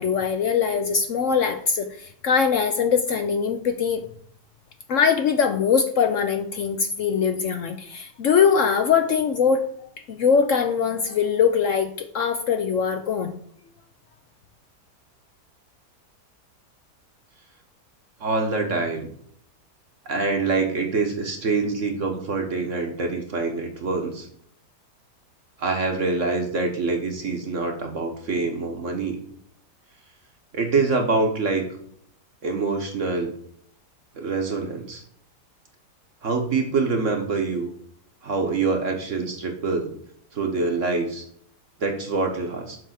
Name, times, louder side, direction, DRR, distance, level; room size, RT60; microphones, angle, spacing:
voice 1, 0.0-4.0 4.9-9.6 10.1-13.3, left 6 dB, 65° left, 7 dB, 0.8 m, -22 dB
voice 2, 18.2-19.1 20.1-24.3 25.6-29.2 30.5-31.7 32.4-33.3 34.1-35.0 36.2-37.7 38.2-39.9 40.3-41.2 41.8-42.8, right 3 dB, 50° right, 3 dB, 1.3 m, -25 dB
7.6 x 3.4 x 6.4 m, 0.64 s
omnidirectional pair, 1.8 m